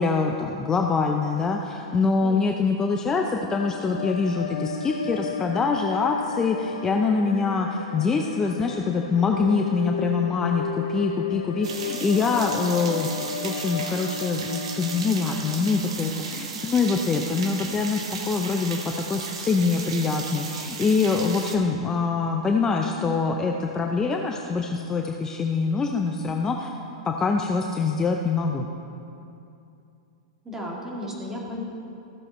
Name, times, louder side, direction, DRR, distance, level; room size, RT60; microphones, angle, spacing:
voice 1, 0.0-26.7 27.1-28.7, left 4 dB, 20° left, 2 dB, 0.6 m, -24 dB
sound 1, 3.2-16.6, left 4 dB, 90° left, 0.7 m, -34 dB
sound 2, 11.6-21.6, right 5 dB, 75° right, 1.2 m, -35 dB
voice 2, 30.4-31.6, left 1 dB, 15° right, -3 dB, 2.3 m, -34 dB
14.0 x 7.8 x 4.3 m, 2.7 s
hypercardioid pair, 115°, 3 cm